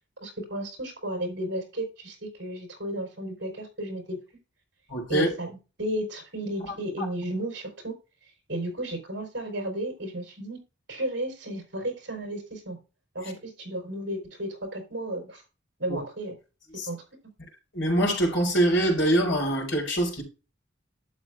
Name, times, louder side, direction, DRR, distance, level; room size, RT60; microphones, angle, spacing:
voice 1, 0.2-4.2 5.1-8.0 8.5-10.6 10.9-12.8 13.1-15.4 15.8-16.3 16.9-17.0, right 1 dB, 60° right, 4.4 m, -33 dB
voice 2, 4.9-5.3 7.0-7.1 15.9-16.0 16.7-16.9 17.7-20.2, right 1 dB, 65° left, 4.7 m, -24 dB
11.5 x 7.9 x 2.4 m
head